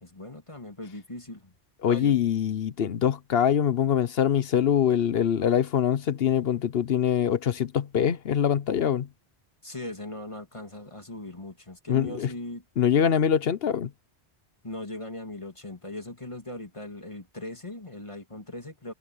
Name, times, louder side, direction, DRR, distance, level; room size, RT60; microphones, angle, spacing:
voice 1, 0.0-1.5 1.9-2.2 9.6-12.6 14.6-18.9, left 1 dB, 30° left, 2.3 m, -39 dB
voice 2, 1.8-9.1 11.9-12.3 12.8-13.9, left 9 dB, 65° left, 1.0 m, -24 dB
omnidirectional pair, 1.1 m